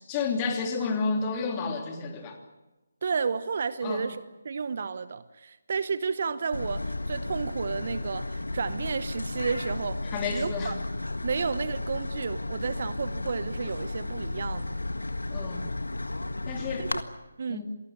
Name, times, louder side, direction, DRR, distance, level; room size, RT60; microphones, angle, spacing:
voice 1, 0.0-2.4 3.8-4.0 10.1-10.7 15.3-15.7 16.5-16.9 17.5-17.7, left 4 dB, 20° left, 4 dB, 3.1 m, -30 dB
voice 2, 3.0-10.0 10.3-10.8 11.2-14.8 16.8-17.0 17.4-17.7, right 5 dB, 45° right, 14 dB, 1.0 m, -32 dB
sound 1, 6.5-17.0, left 2 dB, 75° left, 1.6 m, -33 dB
27.5 x 18.5 x 8.7 m, 1.0 s
figure-of-eight pair, 150°, 0 cm